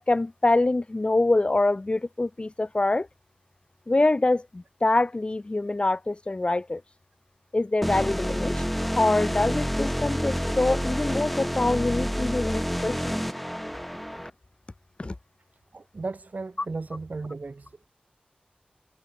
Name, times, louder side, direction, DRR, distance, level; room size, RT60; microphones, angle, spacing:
voice 1, 0.0-3.1 3.9-6.8 7.5-8.6 9.0-13.2 15.0-15.1, left 2 dB, 35° left, 0.9 m, -25 dB
sound 1, 7.8-14.3, equal, ahead, 2.5 m, -28 dB
voice 2, 15.7-17.9, right 3 dB, 60° right, 3.0 m, -35 dB
cardioid pair, 45°, 3 cm